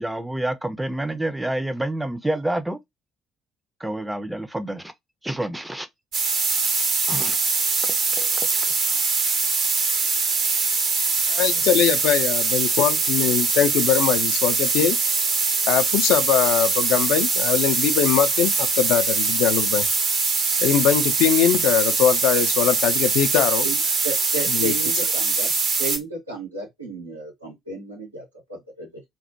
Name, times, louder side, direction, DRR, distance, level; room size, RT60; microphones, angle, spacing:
voice 1, 0.0-2.8 3.8-4.9 5.2-5.9 7.1-7.4 8.2-8.6, right 1 dB, 5° right, 0.5 m, -28 dB
sound 1, 6.1-26.0, right 4 dB, 50° right, 0.7 m, -22 dB
voice 2, 11.3-15.0 15.7-19.9 20.6-23.7 24.5-24.7, left 9 dB, 60° left, 0.3 m, -21 dB
voice 3, 23.6-25.5 25.8-29.0, right 2 dB, 85° right, 0.8 m, -33 dB
2.2 x 2.0 x 2.7 m
figure-of-eight pair, 50°, 0 cm